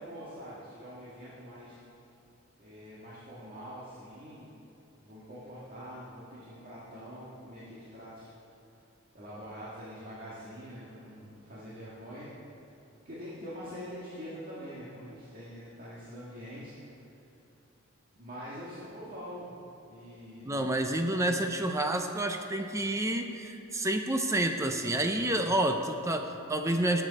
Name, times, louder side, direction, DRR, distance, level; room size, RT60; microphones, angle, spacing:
voice 1, 0.0-1.8 2.6-4.5 5.0-8.3 9.1-12.4 13.0-16.9 18.2-19.5 19.9-20.6 25.3-25.5, equal, 45° right, -8 dB, 1.9 m, -44 dB
voice 2, 20.4-27.0, right 1 dB, 15° right, 5 dB, 0.6 m, -29 dB
17.5 x 8.1 x 4.2 m, 2.7 s
head